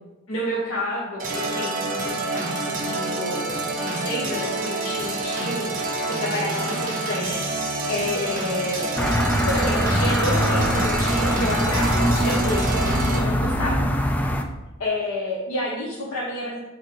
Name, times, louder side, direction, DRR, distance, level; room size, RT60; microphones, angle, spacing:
voice 1, 0.3-8.9 9.5-13.9 14.2-14.3 14.8-16.6, left 1 dB, 80° left, -5 dB, 1.2 m, -30 dB
sound 1, 1.2-13.2, right 2 dB, 40° right, 1.4 m, -28 dB
sound 2, 9.0-14.4, equal, 5° left, 0.4 m, -22 dB
8.7 x 4.4 x 3.8 m, 1.0 s
head